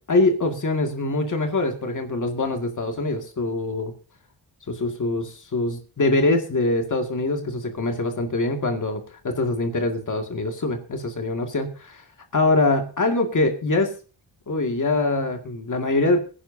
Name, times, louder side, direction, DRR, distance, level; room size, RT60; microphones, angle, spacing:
voice 1, 0.0-3.9 4.7-12.0 12.3-13.9 14.5-16.2, left 2 dB, 45° left, 4 dB, 2.1 m, -24 dB
23.0 x 10.5 x 2.7 m, 0.38 s
wide cardioid pair, 125°, 41 cm